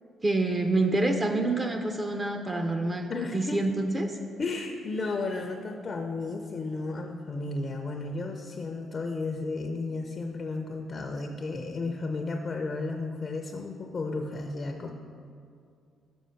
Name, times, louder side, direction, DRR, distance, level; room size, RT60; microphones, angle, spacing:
voice 1, 0.2-4.2, right 2 dB, 25° right, 5 dB, 0.5 m, -27 dB
voice 2, 3.1-3.6 4.4-14.9, left 3 dB, 40° left, 4 dB, 0.5 m, -33 dB
6.2 x 4.9 x 5.6 m, 2.4 s
cardioid pair, 90°, 0 cm